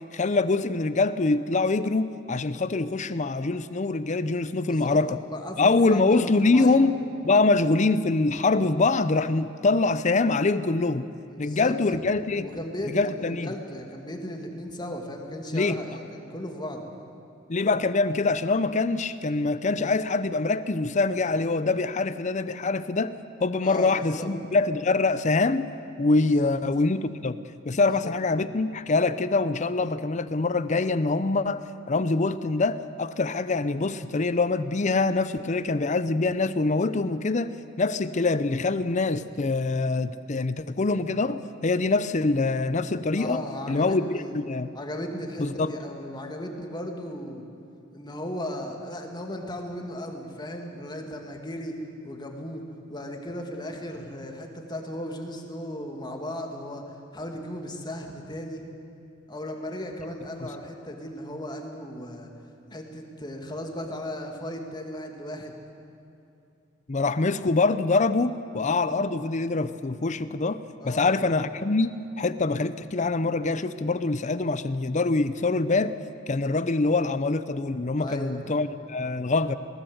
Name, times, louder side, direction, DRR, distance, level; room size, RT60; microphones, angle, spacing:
voice 1, 0.1-5.2 5.6-11.1 11.4-12.5 12.9-13.5 15.5-15.8 17.5-23.1 23.4-25.7 26.0-37.5 37.8-43.4 43.7-44.7 45.4-45.7 60.4-60.5 66.9-70.6 70.8-75.9 76.3-79.5, left 3 dB, 40° left, 13 dB, 0.6 m, -24 dB
voice 2, 4.7-5.0 5.3-6.8 11.3-11.8 12.4-16.8 23.6-24.3 26.4-26.5 27.9-28.0 43.1-44.4 44.7-47.4 47.9-51.7 52.0-52.6 52.9-58.6 59.3-62.3 62.7-65.5 70.8-71.2 78.0-78.5, left 1 dB, 25° left, 3 dB, 2.3 m, -36 dB
20.5 x 19.0 x 8.0 m, 2.7 s
head